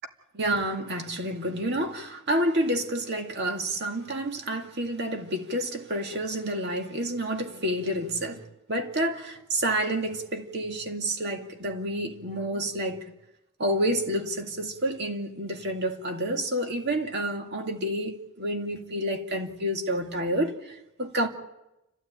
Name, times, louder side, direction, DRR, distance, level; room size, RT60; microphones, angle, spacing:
voice 1, 0.3-8.4 8.7-13.1 13.6-21.3, right 1 dB, 50° right, 2.2 m, -29 dB
29.5 x 13.5 x 8.9 m
head